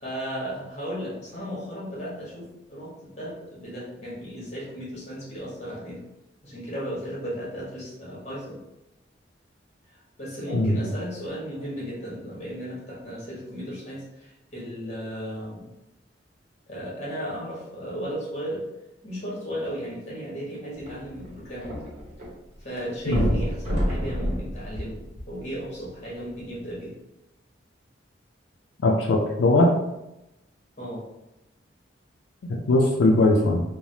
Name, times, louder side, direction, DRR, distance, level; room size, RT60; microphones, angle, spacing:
voice 1, 0.0-6.0 6.4-8.6 9.9-15.7 16.7-18.7 19.0-21.8 22.6-26.9 30.8-31.0, equal, 40° left, -6 dB, 1.1 m, -35 dB
sound 1, 20.8-22.3 22.6-22.7 23.1-25.6 26.3-26.4, equal, 40° right, 0.9 m, -28 dB
voice 2, 28.8-29.7 32.7-33.6, left 2 dB, 85° left, 0 dB, 0.4 m, -20 dB
3.2 x 2.0 x 2.7 m, 0.93 s
head